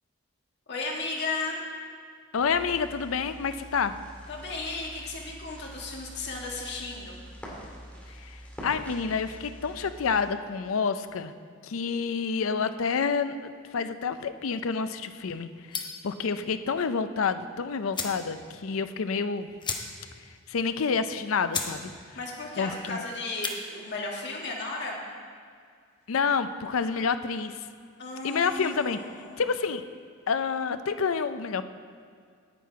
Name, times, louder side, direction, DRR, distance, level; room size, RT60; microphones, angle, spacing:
voice 1, 0.7-1.6 4.3-7.2 22.2-25.0 28.0-29.4, left 3 dB, 55° left, -2 dB, 2.0 m, -35 dB
voice 2, 2.3-3.9 8.2-11.3 11.6-19.5 20.5-21.9 22.6-23.0 26.1-27.7 28.2-29.8 30.3-31.6, left 5 dB, 75° left, 11 dB, 0.5 m, -28 dB
sound 1, 2.4-10.2, equal, 5° left, 2.2 m, -45 dB
sound 2, 15.7-16.1 17.4-17.5 17.9-18.3 18.6-18.7 18.9-19.1 19.6-20.2 20.5-20.6 21.1-21.2 21.5-21.8 22.1-22.5 23.2-23.6, left 5 dB, 20° left, 0.8 m, -34 dB
9.9 x 9.3 x 4.7 m, 2.1 s
head